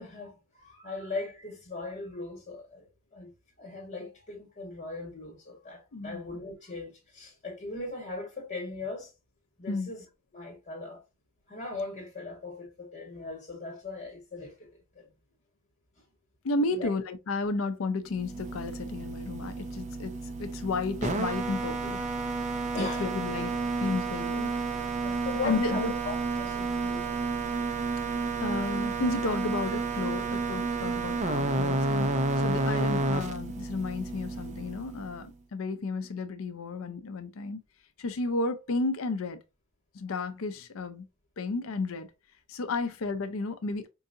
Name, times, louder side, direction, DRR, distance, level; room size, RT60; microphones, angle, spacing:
voice 1, 0.0-9.1 9.6-10.0 10.3-11.0 11.5-14.7 14.9-15.1 16.7-16.9 22.7-23.1 25.0-27.2 28.6-28.7, left 3 dB, 40° left, 1.5 m, -39 dB
voice 2, 16.4-22.0 22.7-24.5 25.4-25.9 28.4-32.1 32.4-37.6 38.0-39.4 39.9-41.1 41.4-42.1 42.5-43.9, left 3 dB, 75° left, 0.5 m, -32 dB
sound 1, 18.1-35.3, right 3 dB, 35° right, 0.5 m, -31 dB
4.6 x 2.7 x 2.6 m
head